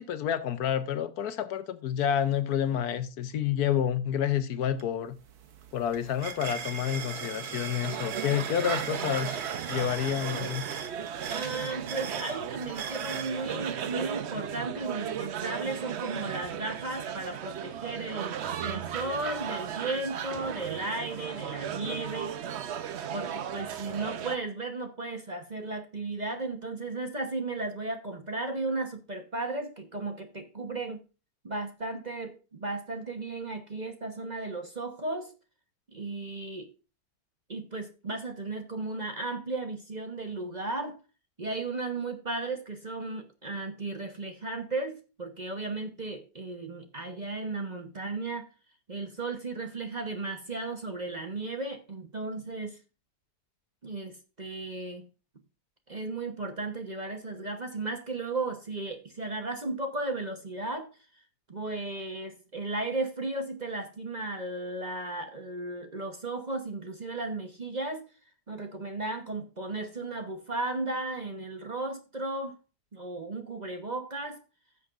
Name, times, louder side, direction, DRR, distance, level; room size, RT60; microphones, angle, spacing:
voice 1, 0.0-5.2 5.7-9.4 9.7-10.6, left 9 dB, 75° left, 1.3 m, -29 dB
sound 1, 4.8-4.9 5.2-13.4, right 7 dB, 75° right, 1.6 m, -39 dB
sound 2, 7.8-24.4, right 9 dB, 55° right, 0.8 m, -36 dB
voice 2, 11.3-22.3 23.1-31.0 31.4-35.3 35.9-36.7 37.5-41.0 41.4-48.5 48.9-52.8 53.8-55.0 55.9-60.9 61.5-68.0 68.5-72.6 72.9-74.4, right 2 dB, 30° right, 1.0 m, -35 dB
15.5 x 6.7 x 2.5 m
omnidirectional pair, 1.7 m